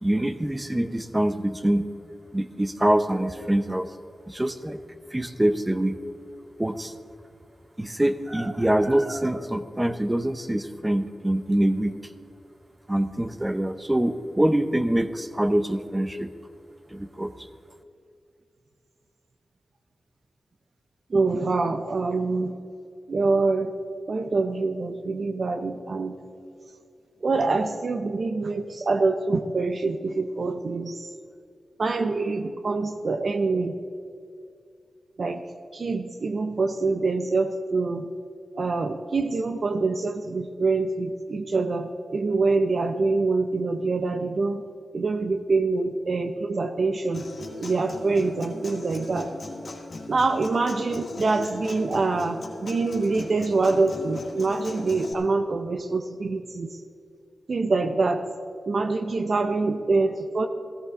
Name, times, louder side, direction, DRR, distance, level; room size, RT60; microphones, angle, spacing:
voice 1, 0.0-1.8 2.3-3.9 4.3-4.8 5.1-6.0 6.6-6.9 7.8-12.0 12.9-16.3 16.9-17.3, right 1 dB, 15° right, 9 dB, 0.8 m, -24 dB
voice 2, 21.1-22.5 23.1-23.7 24.1-26.1 27.2-31.1 31.8-33.7 35.2-35.4 35.7-38.1 38.6-44.6 44.9-47.2 47.6-49.3 50.1-56.7 57.5-58.3 58.7-60.5, right 3 dB, 60° right, 7 dB, 0.7 m, -25 dB
Human voice / Acoustic guitar, 47.1-55.1, left 3 dB, 60° left, 2.1 m, -38 dB
16.0 x 14.0 x 3.7 m, 2.4 s
cardioid pair, 60°, 0 cm